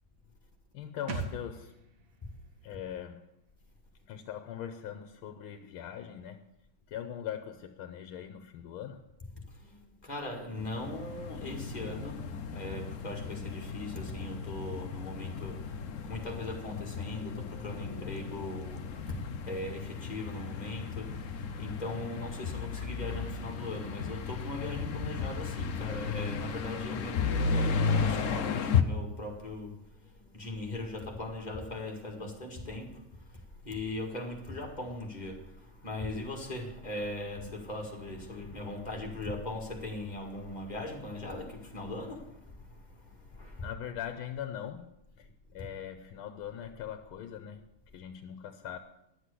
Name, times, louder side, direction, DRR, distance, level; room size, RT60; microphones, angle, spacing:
voice 1, 0.7-1.8 2.6-3.2 4.1-6.4 6.9-9.0 43.6-47.7 47.9-48.8, left 9 dB, 80° left, 1.6 m, -41 dB
sound 1, 1.1-4.6 4.9-5.0, right 4 dB, 70° right, 2.0 m, -44 dB
voice 2, 9.5-43.7, left 1 dB, 20° left, 2.0 m, -40 dB
sound 2, 10.6-28.8, left 5 dB, 65° left, 0.8 m, -34 dB
11.5 x 7.7 x 8.3 m
omnidirectional pair, 2.3 m